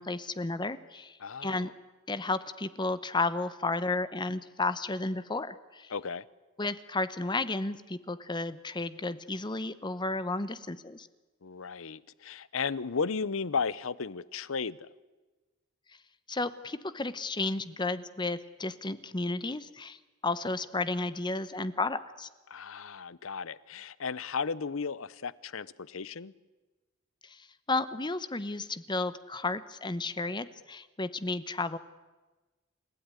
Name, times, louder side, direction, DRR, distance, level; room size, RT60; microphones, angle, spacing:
voice 1, 0.0-1.7 2.1-5.9 6.6-11.1 16.3-22.3 27.2-31.8, left 3 dB, 20° left, 0.9 m, -33 dB
voice 2, 1.2-1.7 5.9-6.2 11.4-14.8 22.5-26.3, left 5 dB, 85° left, 0.8 m, -34 dB
29.0 x 16.5 x 9.8 m
head